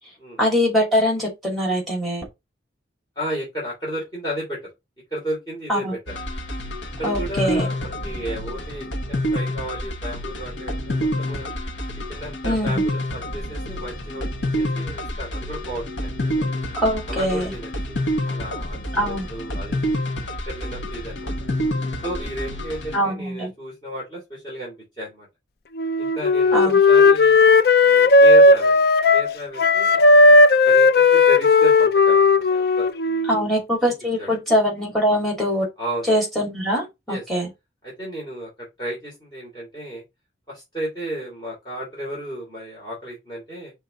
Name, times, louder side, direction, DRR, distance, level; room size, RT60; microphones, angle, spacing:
voice 1, 0.4-2.2 5.7-5.9 7.0-7.7 12.4-12.8 16.8-17.5 18.9-19.3 22.9-23.5 26.5-26.8 33.3-35.7 36.1-37.5, equal, ahead, 2.5 m, -22 dB
voice 2, 3.1-4.6 5.1-6.0 7.0-11.5 12.1-14.3 14.6-16.5 17.1-20.2 20.5-21.3 22.0-25.3 26.0-27.4 27.8-28.9 29.1-30.0 30.6-33.4 34.2-34.3 35.8-36.1 37.1-37.2 37.8-40.0 40.5-43.7, right 1 dB, 20° left, 3.0 m, -33 dB
sound 1, 6.1-23.0, equal, 70° left, 1.1 m, -28 dB
Wind instrument woodwind instrument, 25.8-29.3 29.6-33.4, left 3 dB, 55° left, 0.4 m, -15 dB
5.6 x 3.5 x 5.0 m
head